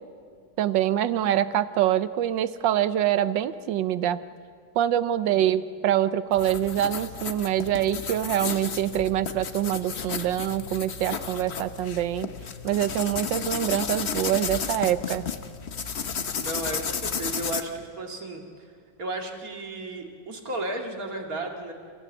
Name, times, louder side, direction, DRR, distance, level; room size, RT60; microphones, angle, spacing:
voice 1, 0.6-4.2 4.8-12.3 12.6-15.2, right 11 dB, 75° right, 14 dB, 1.4 m, -25 dB
sound 1, 6.3-17.6, left 6 dB, 45° left, 1.0 m, -33 dB
voice 2, 16.4-18.4 19.0-21.7, right 2 dB, 45° right, 2 dB, 2.7 m, -34 dB
29.5 x 16.0 x 8.3 m, 2.2 s
omnidirectional pair, 2.1 m